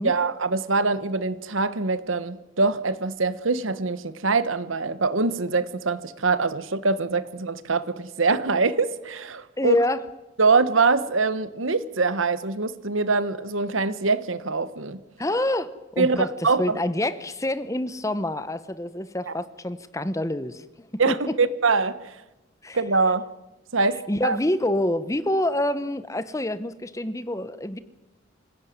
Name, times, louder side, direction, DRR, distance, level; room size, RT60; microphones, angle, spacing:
voice 1, 0.0-9.8 10.4-15.0 16.0-16.8 19.3-19.4 21.0-22.2 22.7-23.3 23.7-24.4, right 4 dB, 80° right, 14 dB, 1.3 m, -24 dB
voice 2, 9.6-10.0 15.2-20.6 21.1-21.3 22.6-22.8 24.1-27.8, left 1 dB, 15° left, 14 dB, 0.9 m, -27 dB
26.0 x 16.5 x 9.4 m, 1.0 s
head